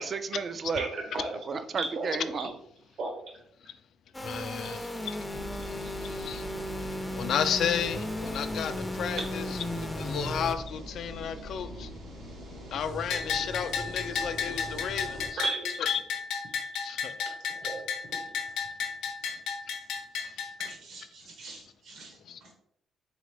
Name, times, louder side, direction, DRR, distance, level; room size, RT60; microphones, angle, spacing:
voice 1, 0.0-0.9 1.4-2.6, right 5 dB, 45° right, 0.4 m, -32 dB
voice 2, 0.8-1.4 1.8-2.1 3.0-3.1 9.3-9.4 11.0-11.9 15.4-15.7 16.6-16.7 17.5-17.8 18.1-18.2 19.3-19.4 20.6-22.5, right 3 dB, 70° right, 1.2 m, -37 dB
sound 1, 4.1-10.6, left 1 dB, 10° left, 0.5 m, -35 dB
voice 3, 4.2-5.2 6.0-6.5 7.1-9.5 9.7-11.9 12.7-15.4 15.8-16.0 16.8-17.2 22.3-22.4, left 8 dB, 70° left, 0.3 m, -33 dB
sound 2, 5.3-15.3, equal, 85° right, 1.3 m, -42 dB
Bell, 13.1-20.7, left 6 dB, 85° left, 0.7 m, -33 dB
3.9 x 3.4 x 3.3 m
cardioid pair, 90°, 0 cm